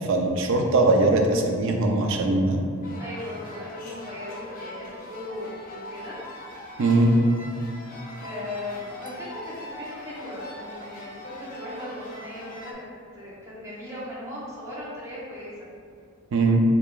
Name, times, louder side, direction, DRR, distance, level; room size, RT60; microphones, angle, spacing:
voice 1, 0.0-2.6 6.8-7.2 16.3-16.6, right 2 dB, 65° right, 3 dB, 0.4 m, -21 dB
sound 1, 2.8-12.7, left 1 dB, 40° left, 0.4 m, -41 dB
voice 2, 3.0-6.2 8.2-12.9 13.1-15.7, left 1 dB, 15° right, -8 dB, 0.8 m, -38 dB
4.7 x 2.3 x 2.3 m, 2.2 s
head